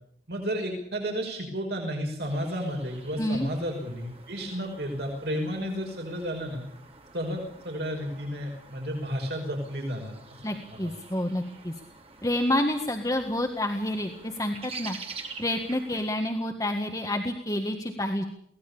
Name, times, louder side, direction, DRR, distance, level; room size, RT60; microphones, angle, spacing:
voice 1, 0.3-6.6 7.1-10.1 10.7-10.9, equal, 70° right, 1 dB, 5.6 m, -32 dB
sound 1, 2.2-16.1, right 4 dB, 35° right, 2.9 m, -47 dB
voice 2, 3.2-3.5 10.4-11.7 12.2-15.0 15.4-18.2, left 1 dB, 20° left, 3 dB, 1.7 m, -28 dB
23.5 x 18.5 x 7.0 m, 0.70 s
head